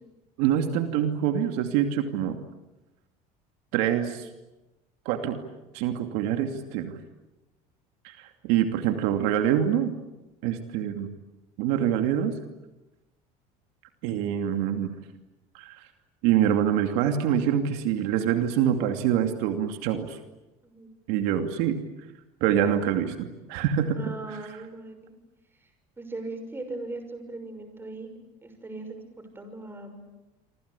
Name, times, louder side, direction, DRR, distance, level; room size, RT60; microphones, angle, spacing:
voice 1, 0.4-2.4 3.7-4.3 5.0-5.4 5.7-6.9 8.0-9.9 10.4-11.1 11.6-12.3 14.0-14.9 15.5-15.8 16.2-20.2 21.1-21.8 22.4-24.4, right 9 dB, 80° right, 6 dB, 2.7 m, -25 dB
voice 2, 23.9-25.1 26.0-28.1 28.4-29.0 29.3-30.0, right 2 dB, 15° right, 7 dB, 6.1 m, -39 dB
26.5 x 26.0 x 8.4 m, 1.0 s
cardioid pair, 135°, 16 cm